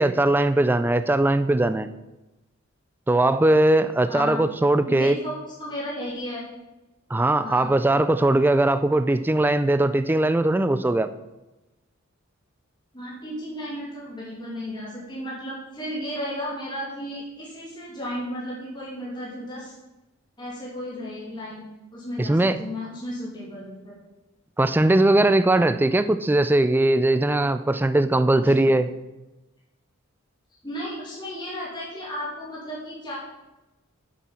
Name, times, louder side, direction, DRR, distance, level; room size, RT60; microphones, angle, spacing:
voice 1, 0.0-1.9 3.1-5.2 7.1-11.1 22.2-22.6 24.6-28.9, right 1 dB, 10° right, 11 dB, 0.3 m, -20 dB
voice 2, 4.1-4.4 4.9-5.3 5.6-6.4 7.4-7.7 12.9-19.8 20.4-21.7 21.9-23.9 28.4-28.7 30.6-33.2, equal, 20° left, -6 dB, 2.3 m, -34 dB
7.5 x 7.0 x 5.6 m, 1.0 s
head